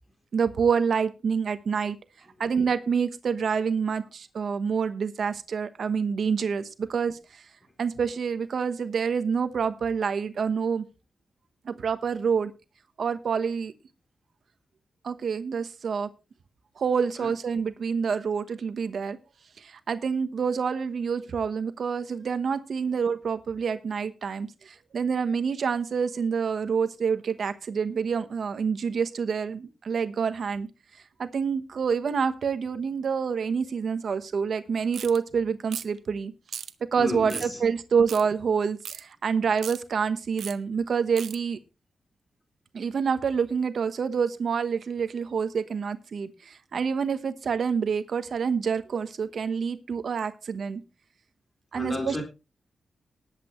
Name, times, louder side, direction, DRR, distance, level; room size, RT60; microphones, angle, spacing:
voice 1, 0.3-2.0 2.4-7.4 7.8-10.8 11.6-12.5 13.0-13.7 15.0-16.1 16.8-19.2 19.6-30.7 31.2-36.3 36.9-41.6 42.7-50.8 51.7-52.2, right 6 dB, 65° right, 1.1 m, -27 dB
sound 1, 34.9-35.2 35.7-36.0 36.5-36.7 37.3-37.5 38.1-38.2 38.8-39.0 39.6-39.8 40.4-40.5 41.2-41.4, right 7 dB, 90° right, 0.9 m, -37 dB
voice 2, 37.0-37.6 51.7-52.2, left 1 dB, 20° left, 4.6 m, -31 dB
19.5 x 8.4 x 3.1 m
wide cardioid pair, 100°, 0 cm